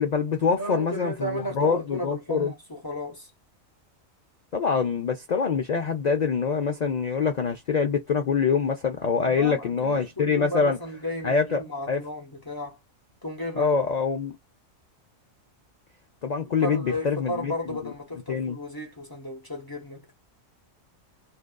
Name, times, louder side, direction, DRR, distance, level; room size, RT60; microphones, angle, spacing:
voice 1, 0.0-2.5 4.5-10.8 11.2-12.0 13.6-14.4 16.2-17.5 18.3-18.6, left 5 dB, 90° left, 0.3 m, -25 dB
voice 2, 0.5-3.3 9.2-12.8 13.2-13.7 16.6-20.1, left 1 dB, 20° left, 0.8 m, -34 dB
2.6 x 2.3 x 2.2 m
omnidirectional pair, 1.4 m